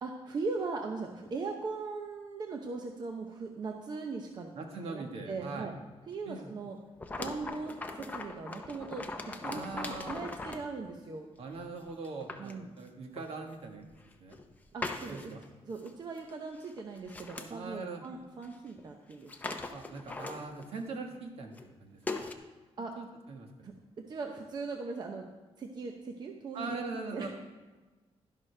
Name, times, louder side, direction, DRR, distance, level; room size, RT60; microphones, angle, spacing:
voice 1, 0.0-4.5 4.9-5.7 6.1-6.8 7.1-11.3 12.4-12.7 14.7-15.3 15.6-19.6 22.8-22.9 23.6-25.3 25.6-26.8 27.1-27.3, right 4 dB, 40° right, 3 dB, 0.8 m, -39 dB
voice 2, 4.5-5.7 6.2-6.5 9.4-10.2 11.4-13.9 14.2-14.4 15.1-15.4 17.5-18.0 19.7-22.3 23.0-23.7 26.5-27.3, right 3 dB, 70° right, 3 dB, 1.5 m, -41 dB
sound 1, 7.0-10.7 11.5-11.6 12.0-12.5 13.2-13.3 14.0-14.5 14.8-15.4 15.8-15.9 16.2-16.3 16.6-17.5 18.4-18.5 18.8-18.9 19.1-20.8 21.5-21.7 22.1-22.3, left 3 dB, 15° left, 0.6 m, -40 dB
11.5 x 11.0 x 3.3 m, 1.3 s
wide cardioid pair, 180°, 11 cm